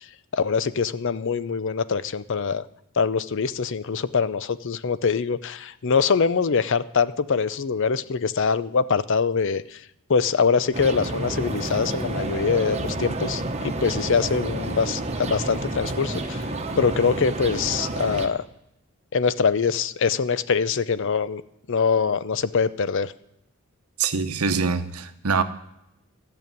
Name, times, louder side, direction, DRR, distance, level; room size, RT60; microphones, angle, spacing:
voice 1, 0.3-2.6 3.0-9.8 10.1-16.4 16.8-18.4 19.1-21.4 21.7-23.1, left 5 dB, 55° left, 0.5 m, -23 dB
sound 1, 10.7-18.3, right 2 dB, 30° right, 1.1 m, -30 dB
voice 2, 24.0-25.4, right 5 dB, 80° right, 0.9 m, -24 dB
14.0 x 6.9 x 9.2 m
head